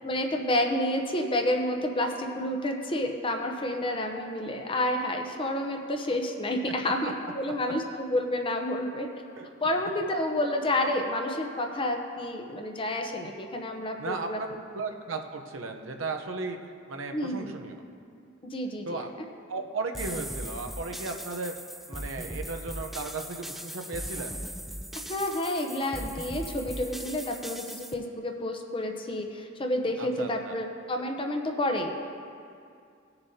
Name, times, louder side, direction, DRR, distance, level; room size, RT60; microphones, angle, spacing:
voice 1, 0.0-9.1 9.6-14.4 17.1-17.5 18.4-19.0 24.9-31.9, left 1 dB, 25° left, 3 dB, 0.7 m, -29 dB
voice 2, 14.0-14.5 14.7-16.6 16.9-17.8 18.9-19.1 19.5-21.5 21.9-24.4 30.0-30.5, right 3 dB, 80° right, 4 dB, 0.7 m, -35 dB
sound 1, 19.9-27.9, equal, ahead, 0.3 m, -39 dB
18.0 x 6.8 x 2.8 m, 2.4 s
head